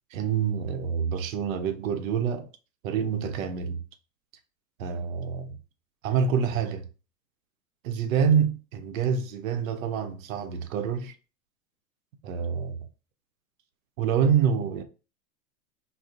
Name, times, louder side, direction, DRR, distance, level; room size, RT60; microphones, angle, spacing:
voice 1, 0.1-2.5 2.8-3.8 4.8-5.5 6.0-6.9 7.8-11.1 12.2-12.8 14.0-14.8, right 7 dB, 65° right, 0.6 m, -26 dB
2.4 x 2.0 x 2.6 m
figure-of-eight pair, 90°, 43 cm